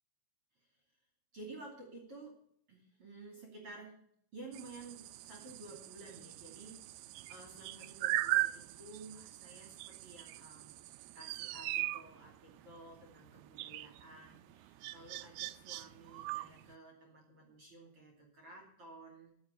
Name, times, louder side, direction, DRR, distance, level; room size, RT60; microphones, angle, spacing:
voice 1, 1.3-2.4 2.7-4.0 4.3-10.8 11.1-19.3, right 2 dB, 40° right, 1 dB, 2.8 m, -53 dB
sound 1, 4.5-16.7, right 17 dB, 85° right, 2.2 m, -40 dB
14.5 x 6.9 x 8.2 m, 0.68 s
omnidirectional pair, 5.1 m